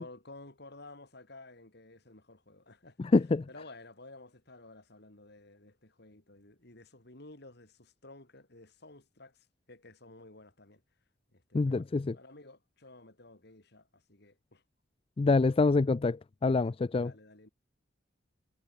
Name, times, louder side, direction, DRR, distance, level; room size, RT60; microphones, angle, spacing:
voice 1, 0.0-3.0 3.5-10.8 11.3-11.9 12.1-14.6 16.9-17.5, left 2 dB, 55° left, 3.5 m, -53 dB
voice 2, 3.0-3.4 11.5-12.2 15.2-17.1, left 3 dB, 30° left, 0.4 m, -26 dB
head